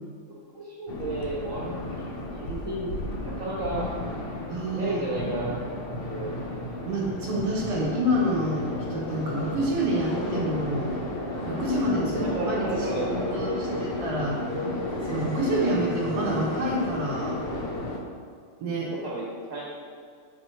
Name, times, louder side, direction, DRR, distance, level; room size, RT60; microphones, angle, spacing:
voice 1, 0.3-2.1 2.4-2.9 3.2-3.9 4.7-6.4 11.9-13.7 15.6-15.8 18.9-19.7, right 1 dB, 55° right, -6 dB, 1.3 m, -33 dB
sound 1, 0.9-18.0, left 1 dB, 55° left, 0.6 m, -33 dB
voice 2, 4.5-5.1 6.9-10.9 11.5-13.5 13.8-14.4 15.0-17.4 18.6-18.9, right 1 dB, 75° right, -5 dB, 1.6 m, -28 dB
6.9 x 4.1 x 4.4 m, 2.1 s
omnidirectional pair, 1.8 m